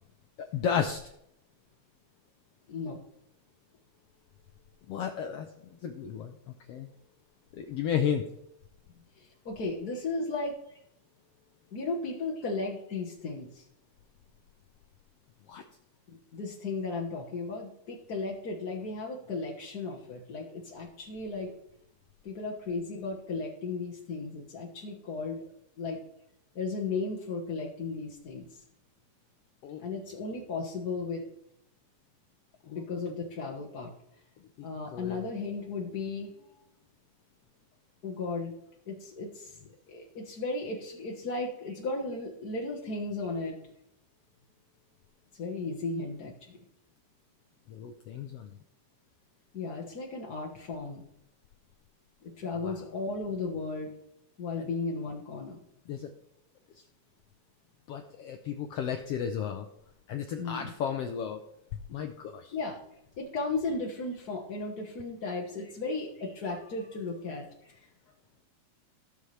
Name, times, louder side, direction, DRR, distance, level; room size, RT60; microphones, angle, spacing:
voice 1, 0.4-1.0 4.9-5.5 5.8-6.3 6.7-6.9 7.5-8.3 15.5-15.6 29.6-29.8 32.6-33.0 34.6-34.7 34.9-35.3 47.7-48.6 52.5-52.8 54.6-54.7 55.9-56.1 57.9-59.7 60.1-61.4 61.9-62.6, left 8 dB, 90° left, 6 dB, 1.3 m, -33 dB
voice 2, 2.7-3.0 9.2-10.6 11.7-13.6 16.1-21.5 22.2-25.4 25.8-26.0 26.5-28.6 29.8-31.2 32.7-33.9 34.6-36.5 38.0-38.5 38.9-39.6 39.9-43.6 45.4-46.6 49.5-51.0 52.2-53.9 54.4-55.6 60.4-60.7 62.5-62.8 63.2-67.9, left 3 dB, 55° left, -2 dB, 1.0 m, -35 dB
17.5 x 7.1 x 3.3 m, 0.77 s
omnidirectional pair, 3.7 m